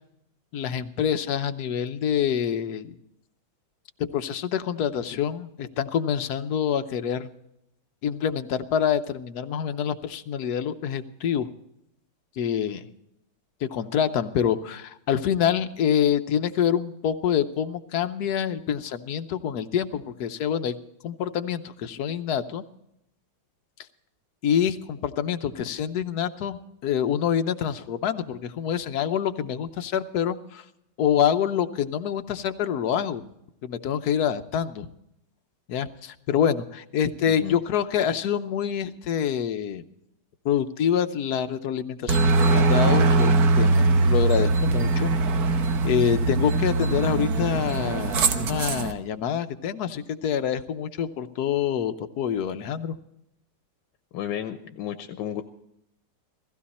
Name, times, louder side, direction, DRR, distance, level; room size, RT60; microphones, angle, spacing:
voice 1, 0.5-3.0 4.1-7.3 8.0-11.5 12.4-12.8 13.6-20.7 21.0-22.6 24.4-30.6 31.0-33.2 33.6-34.9 35.7-39.8 40.4-45.1 45.8-53.0, left 8 dB, 65° left, 9 dB, 1.2 m, -26 dB
Aircraft, 42.1-48.9, right 3 dB, 65° right, 1.4 m, -21 dB
voice 2, 54.1-55.4, left 10 dB, 90° left, 8 dB, 1.4 m, -32 dB
16.5 x 15.5 x 4.2 m, 0.79 s
omnidirectional pair, 1.9 m